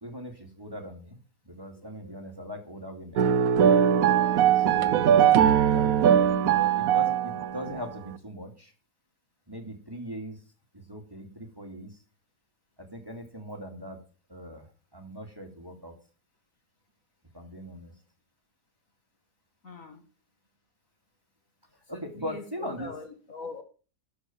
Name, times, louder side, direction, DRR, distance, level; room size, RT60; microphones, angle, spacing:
voice 1, 0.0-1.2 1.5-3.3 4.6-5.1 5.6-8.7 9.5-10.4 10.7-12.0 12.9-14.0 14.3-14.6 14.9-15.9 17.3-17.9 21.9-22.9, equal, 15° right, 3 dB, 2.2 m, -40 dB
sound 1, 3.2-7.8, right 9 dB, 65° right, 1.0 m, -21 dB
voice 2, 19.6-20.0 21.9-23.6, left 3 dB, 55° left, 5 dB, 2.2 m, -42 dB
12.5 x 5.1 x 7.1 m, 0.36 s
omnidirectional pair, 1.7 m